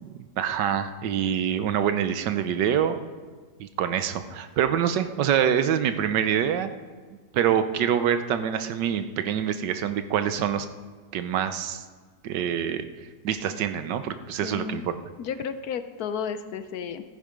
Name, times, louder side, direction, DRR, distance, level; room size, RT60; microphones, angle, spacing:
voice 1, 0.0-3.0 3.6-6.7 7.3-10.7 11.1-11.8 12.2-12.8 13.2-15.0, right 9 dB, 85° right, 10 dB, 1.4 m, -25 dB
voice 2, 14.4-14.9 15.2-17.0, left 7 dB, 70° left, 11 dB, 1.1 m, -32 dB
14.0 x 10.0 x 5.1 m, 1.4 s
omnidirectional pair, 1.8 m